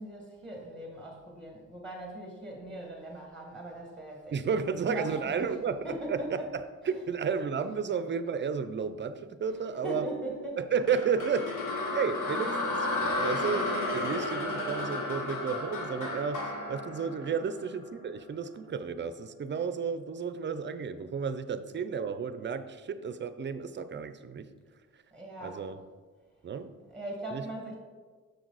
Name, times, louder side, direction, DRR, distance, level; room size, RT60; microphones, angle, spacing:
voice 1, 0.0-5.5 5.8-6.5 6.8-7.0 9.5-10.6 25.1-25.6 26.9-27.8, right 1 dB, 5° left, 0 dB, 1.7 m, -40 dB
voice 2, 4.3-5.8 6.1-6.4 6.9-10.1 10.6-11.5 11.9-12.9 13.2-24.5 25.4-25.8 26.4-26.7 27.3-27.4, right 6 dB, 35° right, 11 dB, 0.5 m, -32 dB
sound 1, 10.9-18.0, left 2 dB, 80° left, 1.4 m, -33 dB
6.6 x 6.3 x 4.0 m, 1.4 s
cardioid pair, 100°, 31 cm